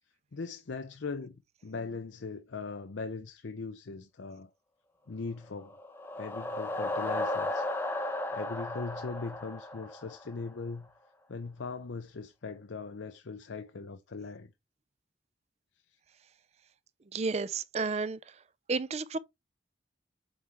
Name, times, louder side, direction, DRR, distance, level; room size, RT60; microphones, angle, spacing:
voice 1, 0.3-1.4 1.6-4.5 5.1-5.7 6.2-7.7 8.3-10.9 11.3-14.5, left 4 dB, 80° left, 0.6 m, -40 dB
sound 1, 5.6-10.5, left 1 dB, 10° left, 0.8 m, -35 dB
voice 2, 17.1-18.2 18.7-19.2, right 4 dB, 35° right, 0.4 m, -31 dB
7.8 x 4.5 x 3.4 m
head